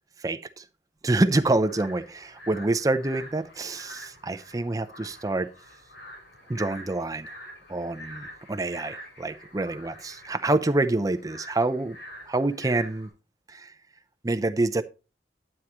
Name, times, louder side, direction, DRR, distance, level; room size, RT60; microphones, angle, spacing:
voice 1, 0.2-0.6 1.0-5.5 6.5-7.3 7.7-12.0 12.3-13.1 13.5-13.7 14.2-14.8, right 2 dB, 20° right, 0.5 m, -27 dB
sound 1, 1.3-13.1, equal, 75° left, 5.7 m, -46 dB
9.8 x 9.1 x 3.0 m
head